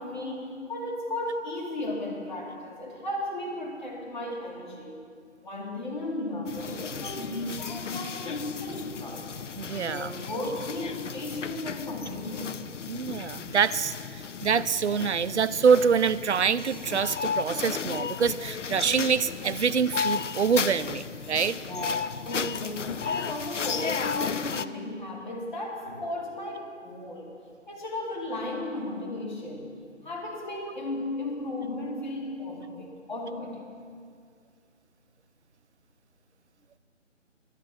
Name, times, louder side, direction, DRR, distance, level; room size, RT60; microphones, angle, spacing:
voice 1, 0.0-5.1 5.4-9.3 9.7-12.6 21.5-27.4 27.7-29.7 30.0-33.6, left 1 dB, 35° left, -2 dB, 2.4 m, -35 dB
sound 1, 6.5-24.7, left 6 dB, 70° left, 0.6 m, -34 dB
voice 2, 9.6-10.1 12.9-21.6, right 6 dB, 65° right, 15 dB, 0.5 m, -25 dB
11.5 x 9.7 x 7.2 m, 2.2 s
figure-of-eight pair, 160°, 38 cm